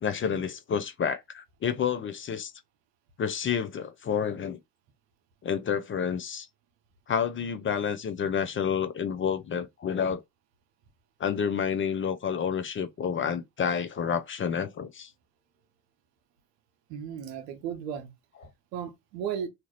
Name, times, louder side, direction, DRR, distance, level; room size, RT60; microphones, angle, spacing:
voice 1, 0.0-2.5 3.2-4.6 5.4-6.5 7.1-10.2 11.2-15.1, left 7 dB, 30° left, 0.4 m, -29 dB
voice 2, 16.9-18.1 18.7-19.5, right 8 dB, 90° right, 0.7 m, -35 dB
2.8 x 2.3 x 3.1 m
hypercardioid pair, 60°, 48 cm